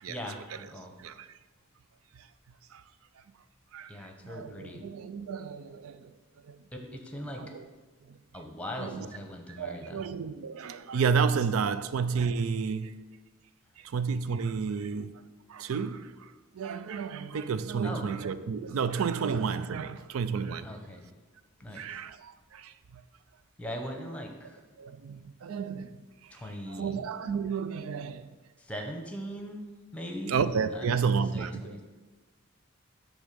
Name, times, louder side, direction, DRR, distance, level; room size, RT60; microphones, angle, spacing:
voice 1, 0.1-0.9 3.9-4.8 6.7-7.4 8.3-10.0 17.8-18.1 20.6-21.1 21.6-22.0 23.6-24.6 26.3-27.0 28.6-29.6 29.9-30.4 30.7-31.8, equal, 5° left, 0.9 m, -40 dB
voice 2, 1.0-1.4 2.1-2.3 2.7-2.8 3.2-3.3 3.7-6.1 6.4-6.6 7.2-7.6 8.1-8.2 8.8-9.1 9.5-12.9 13.8-15.1 15.5-20.7 21.7-23.0 24.8-26.3 26.7-28.3 30.3-31.8, right 6 dB, 90° right, 0.4 m, -32 dB
9.8 x 3.6 x 6.8 m
head